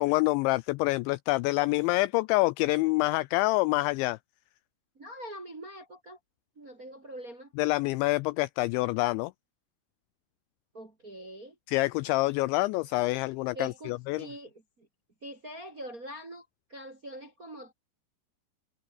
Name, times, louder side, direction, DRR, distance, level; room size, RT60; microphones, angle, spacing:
voice 1, 0.0-4.2 7.6-9.3 11.7-14.3, left 21 dB, 85° left, 2.6 m, -26 dB
voice 2, 4.9-6.2 6.5-7.5 10.7-11.5 13.5-14.9 15.2-17.7, right 1 dB, 30° right, 1.5 m, -43 dB
omnidirectional pair, 5.8 m